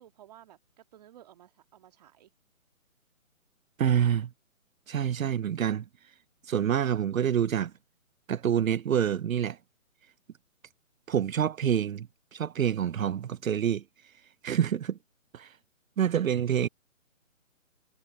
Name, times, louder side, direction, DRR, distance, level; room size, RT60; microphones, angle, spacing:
voice 1, 0.0-2.3, right 12 dB, 30° right, 1.9 m, -55 dB
voice 2, 3.8-4.3 4.9-5.8 6.4-7.7 8.3-9.6 11.1-13.8 14.4-15.0 15.3-15.6 16.0-16.7, right 9 dB, 75° right, 0.7 m, -27 dB
hypercardioid pair, 160°, 41 cm